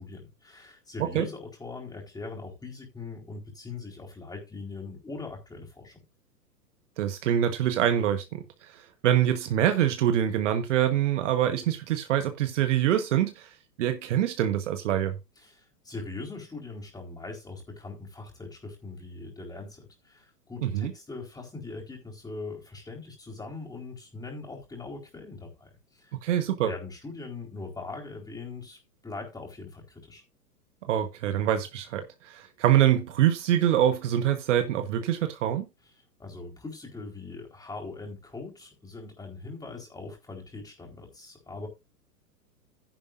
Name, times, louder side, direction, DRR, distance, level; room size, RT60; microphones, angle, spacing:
voice 1, 0.0-6.0 15.4-26.1 26.6-30.2 36.2-41.7, left 3 dB, 10° left, 4.0 m, -41 dB
voice 2, 7.0-13.5 13.8-15.2 20.6-20.9 26.2-26.7 30.9-35.6, right 11 dB, 50° right, 1.3 m, -25 dB
12.0 x 10.5 x 2.5 m
figure-of-eight pair, 105°, 47 cm